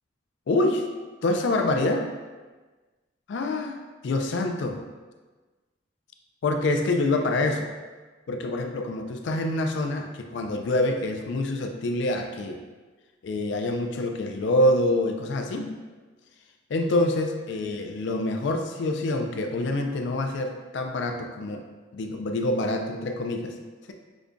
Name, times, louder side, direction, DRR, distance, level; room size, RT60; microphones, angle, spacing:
voice 1, 0.5-0.9 1.2-2.1 3.3-4.8 6.4-7.7 8.3-12.6 13.2-15.8 16.7-21.6 21.9-23.5, left 2 dB, 60° left, 4 dB, 0.3 m, -26 dB
5.0 x 2.2 x 2.5 m, 1.3 s
head